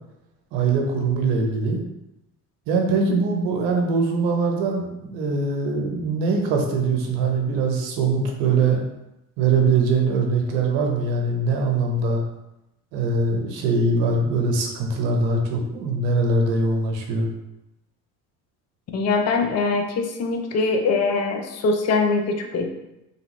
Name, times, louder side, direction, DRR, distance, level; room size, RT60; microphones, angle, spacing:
voice 1, 0.5-1.8 2.7-8.8 9.4-12.2 12.9-17.3, right 3 dB, 65° right, 2 dB, 0.8 m, -22 dB
voice 2, 18.9-22.7, left 3 dB, 35° left, 5 dB, 0.5 m, -22 dB
2.7 x 2.6 x 3.0 m, 0.91 s
hypercardioid pair, 60°, 47 cm